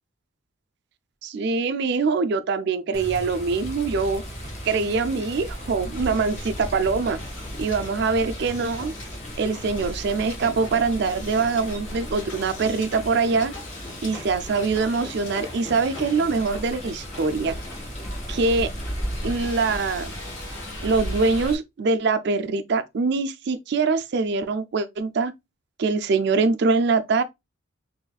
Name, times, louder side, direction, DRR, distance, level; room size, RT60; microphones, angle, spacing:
voice 1, 1.2-4.2 4.6-7.2 7.6-8.9 9.4-13.5 14.0-17.6 18.3-18.7 19.2-20.1 20.8-25.3 25.8-27.2, right 4 dB, 55° right, 0.4 m, -23 dB
Water, 2.9-21.6, equal, 35° left, 0.9 m, -36 dB
Hiss, 3.6-21.5, left 2 dB, 70° left, 2.3 m, -41 dB
4.0 x 3.0 x 2.3 m
head